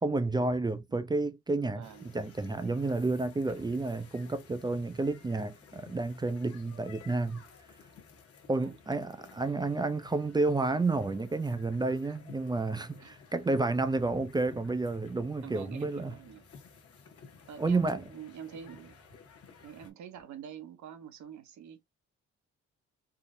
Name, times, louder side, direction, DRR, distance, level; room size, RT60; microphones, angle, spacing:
voice 1, 0.0-1.9 2.1-7.4 8.5-16.2 17.6-18.0, right 3 dB, 15° right, 0.3 m, -30 dB
voice 2, 1.7-2.1 8.5-8.8 12.1-12.2 13.0-13.2 15.4-16.4 17.5-19.0 19.6-21.8, right 8 dB, 70° right, 0.8 m, -46 dB
sound 1, 1.8-19.9, left 5 dB, 50° left, 1.1 m, -54 dB
3.7 x 2.0 x 2.5 m
cardioid pair, 90°, 30 cm